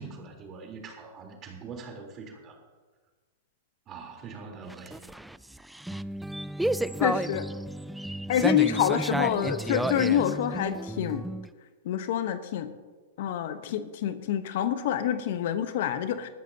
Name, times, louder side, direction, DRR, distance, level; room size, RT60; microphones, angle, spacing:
voice 1, 0.0-2.6 3.9-5.2, right 4 dB, 35° right, 1 dB, 3.6 m, -43 dB
sound 1, 4.6-11.5, right 1 dB, 5° right, 0.4 m, -32 dB
voice 2, 7.0-7.5 8.3-11.2 11.8-12.7 13.2-16.3, left 10 dB, 60° left, 10 dB, 1.0 m, -27 dB
20.0 x 13.5 x 2.9 m, 1.3 s
hypercardioid pair, 110°, 0 cm